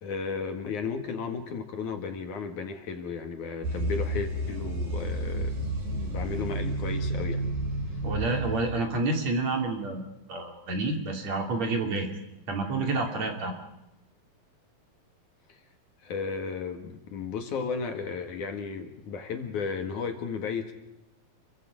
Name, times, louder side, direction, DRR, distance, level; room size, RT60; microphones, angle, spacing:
voice 1, 0.0-7.4 15.5-15.6 16.0-20.7, left 5 dB, 60° left, 5 dB, 2.9 m, -34 dB
sound 1, 3.6-8.7, right 1 dB, 85° right, 6.2 m, -31 dB
voice 2, 8.0-12.1 12.5-13.5, right 3 dB, 50° right, 3 dB, 3.6 m, -29 dB
28.0 x 23.0 x 5.1 m, 0.91 s
omnidirectional pair, 4.2 m